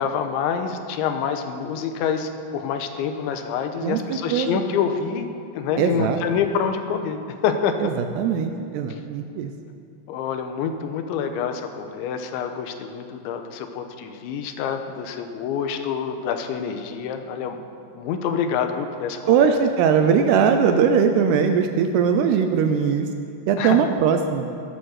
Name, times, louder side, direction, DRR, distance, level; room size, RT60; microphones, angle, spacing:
voice 1, 0.0-7.2 7.4-7.9 8.9-9.0 10.1-17.6 17.9-19.5 23.6-23.9, left 7 dB, 85° left, 7 dB, 3.3 m, -27 dB
voice 2, 3.8-4.6 5.8-6.2 7.8-9.5 19.3-23.1 23.5-24.4, right 7 dB, 80° right, 6 dB, 2.5 m, -20 dB
20.0 x 9.1 x 6.5 m, 2.5 s
omnidirectional pair, 5.2 m